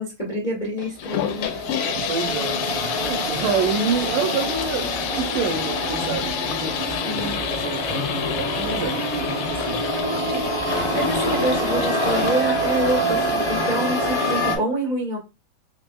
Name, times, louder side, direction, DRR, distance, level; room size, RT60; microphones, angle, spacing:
voice 1, 0.0-1.5 1.8-2.0 7.0-7.4 10.2-10.4 10.9-15.2, right 1 dB, 70° left, 0.4 m, -27 dB
sound 1, 0.8-13.3, left 9 dB, 85° left, 2.3 m, -30 dB
sound 2, 1.0-14.6, equal, 40° left, 1.5 m, -26 dB
voice 2, 2.1-10.0, right 5 dB, 80° right, 2.1 m, -28 dB
5.3 x 3.4 x 2.2 m
omnidirectional pair, 4.1 m